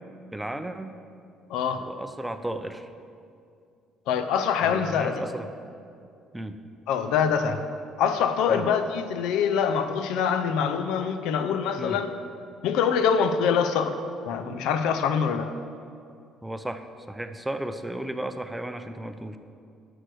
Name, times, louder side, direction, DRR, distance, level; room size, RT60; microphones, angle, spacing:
voice 1, 0.3-0.9 1.8-2.9 4.6-5.5 6.3-6.6 8.5-8.7 11.8-12.0 16.4-19.4, right 1 dB, 5° right, 9 dB, 0.5 m, -34 dB
voice 2, 1.5-1.9 4.1-5.2 6.9-7.6 8.0-12.1 12.6-14.0 14.3-15.5, left 7 dB, 80° left, 9 dB, 0.5 m, -24 dB
9.2 x 6.4 x 4.6 m, 2.4 s
cardioid pair, 95°, 0 cm